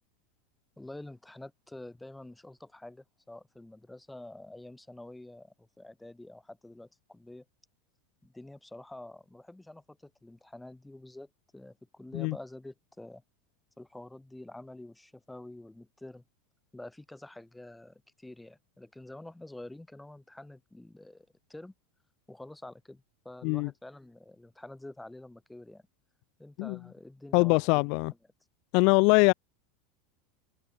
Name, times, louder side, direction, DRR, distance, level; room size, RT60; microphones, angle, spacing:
voice 1, 0.8-7.5 8.2-13.2 13.8-16.2 16.7-21.7 22.3-25.8 26.4-27.9, left 1 dB, 5° left, 3.5 m, -48 dB
voice 2, 27.3-28.1 28.7-29.3, left 36 dB, 55° left, 0.5 m, -23 dB
figure-of-eight pair, 80°, 0 cm